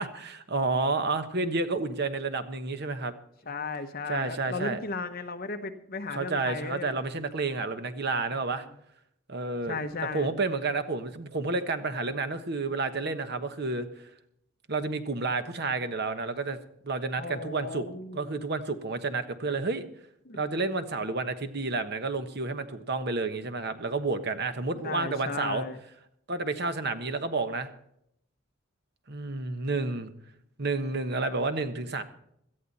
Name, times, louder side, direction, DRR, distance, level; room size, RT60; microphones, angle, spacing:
voice 1, 0.0-3.1 4.1-4.8 6.1-8.6 9.3-9.8 10.1-13.9 14.7-16.6 16.8-17.9 18.1-19.9 20.4-25.6 26.3-27.7 29.1-30.1 30.6-32.0, right 3 dB, 50° right, 9 dB, 1.2 m, -30 dB
voice 2, 3.5-6.9 9.7-10.3 17.2-18.4 20.2-20.4 24.8-25.8, left 3 dB, 45° left, 8 dB, 1.2 m, -35 dB
18.0 x 13.0 x 4.2 m, 0.74 s
head